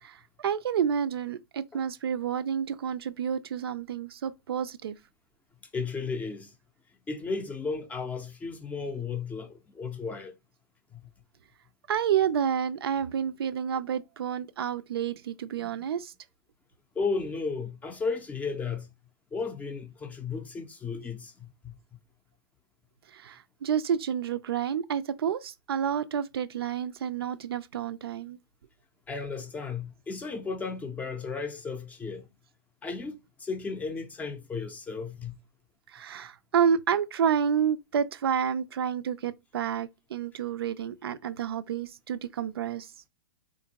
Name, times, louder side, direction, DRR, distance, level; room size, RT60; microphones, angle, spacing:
voice 1, 0.0-5.0 11.9-16.1 23.1-28.4 35.9-42.9, right 8 dB, 80° right, 0.4 m, -29 dB
voice 2, 5.7-6.5 7.1-10.3 10.9-11.0 17.0-18.9 19.3-21.8 29.1-32.3 32.8-35.4, left 4 dB, 10° left, 0.5 m, -34 dB
3.7 x 2.5 x 2.8 m
hypercardioid pair, 130°, 13 cm